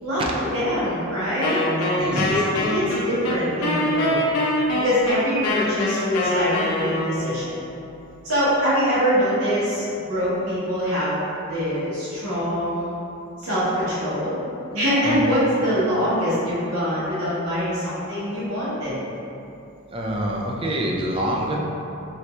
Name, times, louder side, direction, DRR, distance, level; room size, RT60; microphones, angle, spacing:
voice 1, 0.0-4.2 4.8-7.5 8.2-11.2 11.5-12.9 13.4-14.4 14.7-19.0, equal, 85° right, -10 dB, 1.3 m, -24 dB
Wind instrument woodwind instrument, 1.4-7.4, left 1 dB, 80° left, 0.6 m, -24 dB
voice 2, 2.0-2.3 15.1-15.2 19.9-21.6, right 1 dB, 25° right, -2 dB, 0.3 m, -26 dB
2.9 x 2.7 x 3.1 m, 2.8 s
head